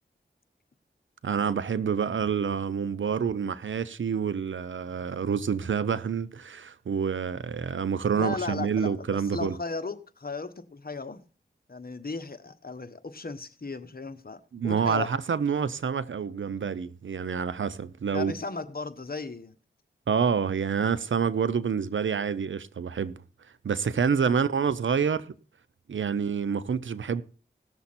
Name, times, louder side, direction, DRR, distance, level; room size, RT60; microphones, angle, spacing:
voice 1, 1.2-9.5 14.5-18.3 20.1-23.1 23.6-25.3 25.9-27.2, right 6 dB, 85° right, 0.7 m, -27 dB
voice 2, 8.1-11.2 11.7-15.1 18.1-19.5 24.3-24.4, left 3 dB, 50° left, 1.3 m, -36 dB
18.0 x 7.0 x 4.3 m
cardioid pair, 45°, 19 cm